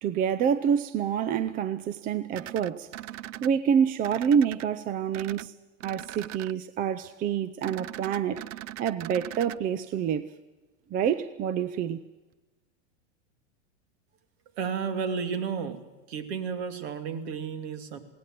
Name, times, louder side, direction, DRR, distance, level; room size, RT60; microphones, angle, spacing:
voice 1, 0.0-2.9 3.4-5.5 5.8-8.4 8.8-10.4 10.9-12.0, right 8 dB, 25° right, 0.5 m, -27 dB
sound 1, 2.3-3.5 4.0-4.7 5.1-5.5 5.8-6.5 7.6-9.6, right 14 dB, 80° right, 0.6 m, -40 dB
voice 2, 14.6-18.0, right 6 dB, 55° right, 2.6 m, -32 dB
19.5 x 17.5 x 7.6 m
supercardioid pair, 140°, 37 cm